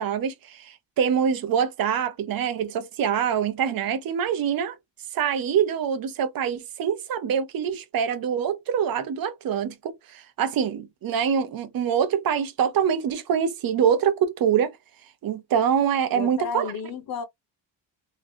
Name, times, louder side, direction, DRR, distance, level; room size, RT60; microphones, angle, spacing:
voice 1, 0.0-4.8 5.1-14.7 15.2-16.6, right 8 dB, 50° right, 0.8 m, -25 dB
voice 2, 16.1-17.2, left 6 dB, 50° left, 0.6 m, -32 dB
3.8 x 3.0 x 2.6 m
cardioid pair, 175°, 46 cm